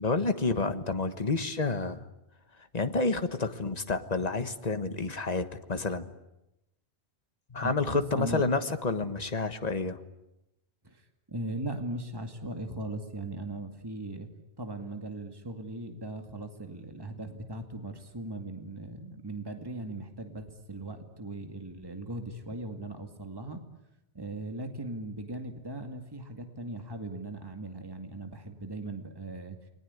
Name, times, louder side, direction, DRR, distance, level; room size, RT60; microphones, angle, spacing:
voice 1, 0.0-2.0 2.7-6.1 7.5-10.0, left 3 dB, 40° left, 9 dB, 1.6 m, -29 dB
voice 2, 7.6-8.4 10.8-11.0 11.3-14.3 14.6-23.6 24.1-29.6, right 2 dB, 20° right, 5 dB, 2.3 m, -38 dB
29.0 x 21.0 x 9.7 m, 0.91 s
omnidirectional pair, 1.1 m